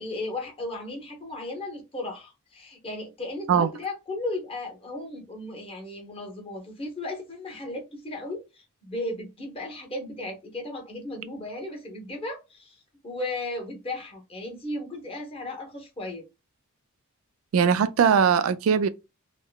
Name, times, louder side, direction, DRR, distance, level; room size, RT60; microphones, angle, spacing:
voice 1, 0.0-16.3, left 2 dB, 25° left, 1.0 m, -35 dB
voice 2, 17.5-18.9, right 7 dB, 75° right, 0.3 m, -20 dB
3.6 x 2.0 x 2.2 m
head